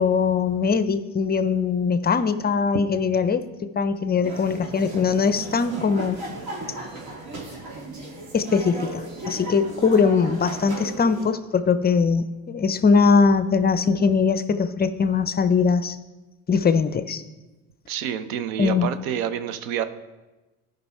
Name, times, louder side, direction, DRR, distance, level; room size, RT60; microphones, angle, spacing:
voice 1, 0.0-6.3 8.3-16.0 16.5-17.2 18.6-18.9, left 5 dB, 25° left, 12 dB, 0.6 m, -21 dB
sound 1, 4.2-11.3, right 2 dB, 60° right, 2.7 m, -36 dB
voice 2, 17.9-19.8, right 10 dB, 85° right, 12 dB, 0.7 m, -28 dB
14.0 x 5.4 x 4.3 m, 1.1 s
hypercardioid pair, 80°, 40 cm